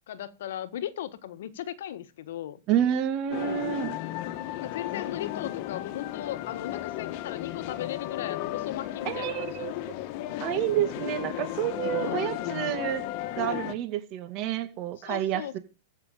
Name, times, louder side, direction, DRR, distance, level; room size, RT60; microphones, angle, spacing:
voice 1, 0.1-2.6 4.6-9.7 11.9-12.3 15.0-15.6, left 11 dB, 70° left, 1.4 m, -37 dB
voice 2, 2.7-4.0 9.0-9.9 10.4-13.1 13.4-15.6, right 11 dB, 40° right, 2.1 m, -29 dB
sound 1, 3.3-13.7, left 14 dB, 50° left, 1.4 m, -34 dB
14.5 x 6.1 x 7.2 m
hypercardioid pair, 130°, 0 cm